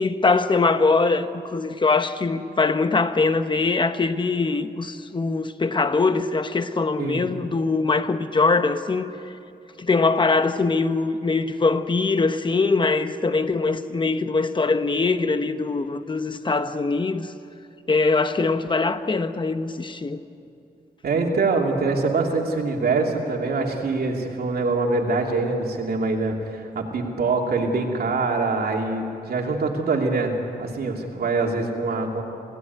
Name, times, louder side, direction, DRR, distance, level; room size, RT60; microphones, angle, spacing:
voice 1, 0.0-9.1 9.8-17.3 17.9-20.2, left 3 dB, 30° left, 1.0 m, -22 dB
voice 2, 7.0-7.3 21.0-32.2, right 3 dB, 70° right, 2.8 m, -24 dB
27.0 x 16.0 x 9.4 m
wide cardioid pair, 135°, 16 cm